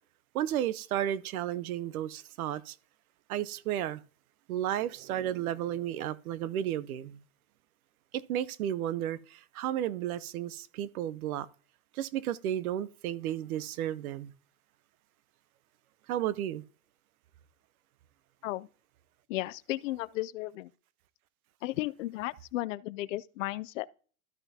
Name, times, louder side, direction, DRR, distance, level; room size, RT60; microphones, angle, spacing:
voice 1, 0.3-2.8 3.3-4.0 4.5-7.2 8.1-11.5 11.9-14.3 16.1-16.6, right 11 dB, 85° right, 0.8 m, -33 dB
voice 2, 19.3-20.7 21.6-23.9, left 17 dB, 65° left, 0.5 m, -34 dB
13.0 x 5.7 x 2.7 m
supercardioid pair, 165°, 42 cm